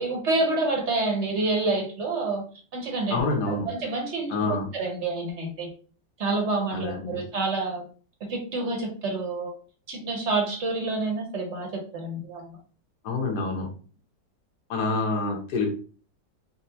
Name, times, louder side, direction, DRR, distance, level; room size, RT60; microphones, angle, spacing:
voice 1, 0.0-2.4 2.7-5.7 6.2-7.8 8.3-9.5 9.9-12.6, right 3 dB, 55° right, 1 dB, 0.8 m, -28 dB
voice 2, 3.1-3.7 4.3-4.7 6.7-7.2 13.0-13.7 14.7-15.7, left 3 dB, 65° left, 1 dB, 1.3 m, -27 dB
4.1 x 2.1 x 2.7 m, 0.40 s
omnidirectional pair, 1.9 m